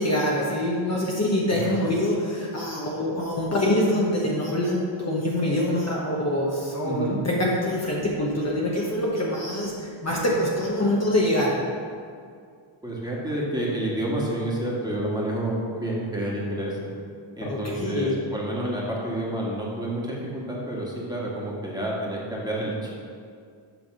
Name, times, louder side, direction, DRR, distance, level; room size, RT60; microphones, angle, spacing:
voice 1, 0.0-11.5 17.4-18.2, left 1 dB, 30° left, -4 dB, 1.0 m, -25 dB
voice 2, 6.8-7.2 12.8-16.9 17.3-22.9, right 1 dB, 10° right, -5 dB, 1.7 m, -29 dB
7.9 x 3.4 x 6.1 m, 2.2 s
cardioid pair, 80°, 50 cm